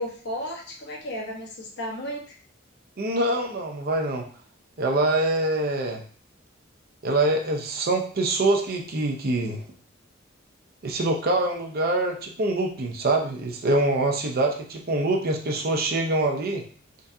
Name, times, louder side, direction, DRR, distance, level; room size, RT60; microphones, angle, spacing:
voice 1, 0.0-2.4, equal, 60° left, -1 dB, 1.1 m, -33 dB
voice 2, 3.0-4.3 4.8-6.0 7.0-9.6 10.8-16.7, right 2 dB, 50° right, 2 dB, 0.7 m, -24 dB
3.9 x 3.5 x 2.7 m, 0.43 s
head